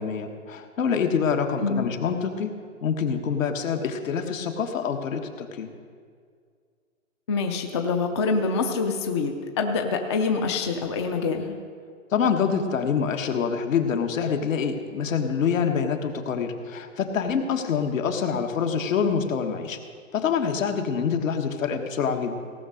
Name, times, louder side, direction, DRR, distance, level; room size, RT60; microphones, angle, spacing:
voice 1, 0.0-2.5 2.8-5.7 12.1-19.8 20.1-22.4, left 6 dB, 70° left, 5 dB, 1.5 m, -26 dB
voice 2, 7.3-11.6, left 4 dB, 20° left, 4 dB, 0.5 m, -25 dB
17.5 x 6.2 x 6.4 m, 2.1 s
hypercardioid pair, 155°, 40 cm